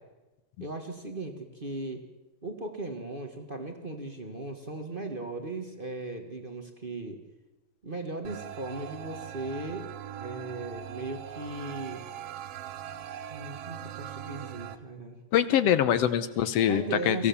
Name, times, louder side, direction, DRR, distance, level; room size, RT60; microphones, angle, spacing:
voice 1, 0.6-2.0 2.4-7.2 7.8-9.9 10.2-12.0 13.3-15.2 16.7-17.3, right 2 dB, 35° right, 4 dB, 0.8 m, -37 dB
sound 1, 8.2-14.8, right 10 dB, 65° right, 1.7 m, -41 dB
voice 2, 15.3-17.3, left 10 dB, 70° left, 13 dB, 1.6 m, -24 dB
23.5 x 16.5 x 7.1 m, 1.1 s
omnidirectional pair, 3.6 m